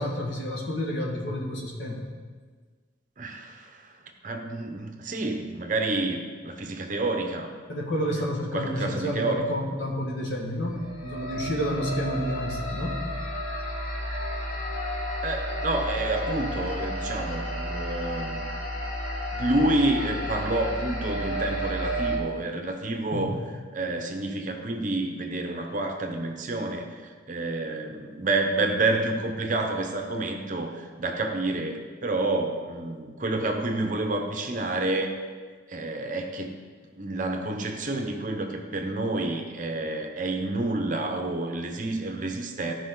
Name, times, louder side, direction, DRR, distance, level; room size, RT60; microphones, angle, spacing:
voice 1, 0.0-2.1 7.7-13.0 23.1-23.3, equal, 70° left, -1 dB, 1.7 m, -30 dB
voice 2, 3.2-7.5 8.5-9.4 15.2-18.5 19.3-23.4 23.7-35.1 35.7-36.5 36.9-42.7, right 2 dB, 40° right, 4 dB, 0.9 m, -29 dB
sound 1, 10.6-22.2, equal, 45° left, 1.6 m, -32 dB
15.5 x 5.3 x 3.9 m, 1.5 s
head